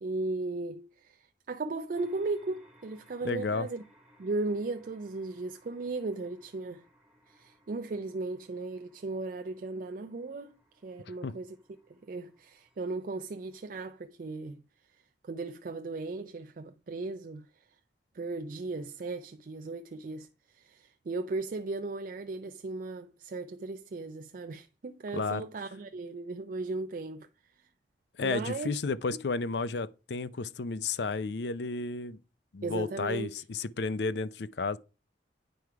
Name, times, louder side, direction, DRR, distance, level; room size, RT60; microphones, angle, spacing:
voice 1, 0.0-3.8 4.2-6.8 7.3-10.5 10.8-11.6 12.0-14.6 15.3-17.4 18.1-20.3 20.5-27.3 28.2-28.7 32.6-33.3, right 3 dB, 50° right, 0.4 m, -36 dB
sound 1, 1.9-14.0, equal, 5° right, 2.1 m, -64 dB
voice 2, 3.2-3.7 11.2-11.4 25.1-25.4 28.2-32.2 32.5-34.8, left 3 dB, 65° left, 0.5 m, -32 dB
9.2 x 4.8 x 4.7 m
head